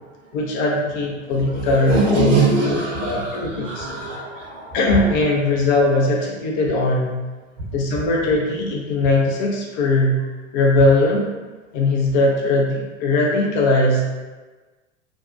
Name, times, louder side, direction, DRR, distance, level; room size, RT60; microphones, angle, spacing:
voice 1, 0.3-2.4 3.0-3.9 4.7-7.2 7.7-10.2 10.5-11.3 11.7-14.1, left 2 dB, 35° left, -2 dB, 0.4 m, -19 dB
voice 2, 1.5-4.7, right 2 dB, 65° right, -4 dB, 0.9 m, -22 dB
2.5 x 2.0 x 2.4 m, 1.3 s
figure-of-eight pair, 85°, 39 cm